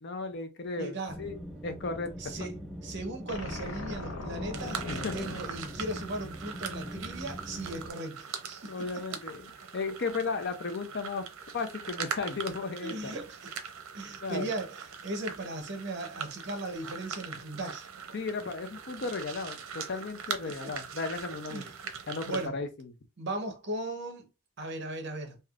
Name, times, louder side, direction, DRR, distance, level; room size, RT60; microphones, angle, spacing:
voice 1, 0.0-2.3 4.9-5.4 8.7-11.3 11.5-13.1 14.2-14.5 18.1-21.6 22.1-22.9, left 4 dB, 55° left, 0.5 m, -35 dB
voice 2, 0.8-1.2 2.2-2.6 2.8-8.8 12.8-13.5 13.9-17.9 20.5-20.7 21.5-21.8 22.3-22.6 23.2-24.3 24.6-25.4, right 2 dB, 55° right, 0.8 m, -37 dB
sound 1, 1.1-7.9, equal, ahead, 0.4 m, -42 dB
sound 2, 3.3-6.6, left 2 dB, 85° left, 0.7 m, -41 dB
sound 3, 4.5-22.5, right 6 dB, 85° right, 0.6 m, -41 dB
3.3 x 2.7 x 2.4 m
head